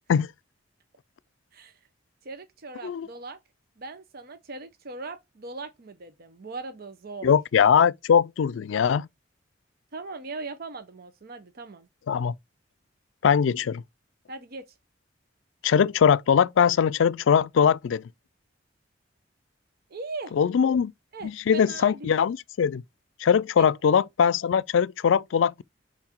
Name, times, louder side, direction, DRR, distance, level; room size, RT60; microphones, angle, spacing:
voice 1, 2.2-3.4 3.8-7.3 9.9-11.9 14.3-14.7 19.9-20.3 21.1-22.1 23.6-23.7, right 3 dB, 55° right, 0.7 m, -39 dB
voice 2, 7.2-9.1 12.1-12.3 13.2-13.8 15.6-18.0 20.3-20.9 21.2-22.8 23.2-25.6, left 7 dB, 75° left, 0.4 m, -21 dB
5.8 x 4.7 x 4.4 m
head